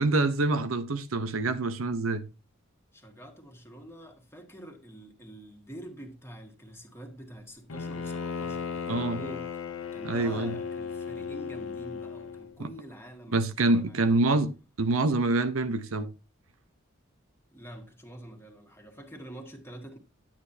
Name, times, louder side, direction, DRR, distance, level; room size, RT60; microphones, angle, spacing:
voice 1, 0.0-2.2 8.9-9.2 10.0-10.5 13.3-14.5 14.8-16.1, right 2 dB, 80° right, 0.8 m, -26 dB
voice 2, 2.9-9.5 9.9-14.2 17.5-20.0, equal, 10° left, 1.8 m, -46 dB
Bowed string instrument, 7.7-12.6, left 6 dB, 85° left, 0.8 m, -36 dB
12.0 x 8.6 x 2.8 m
head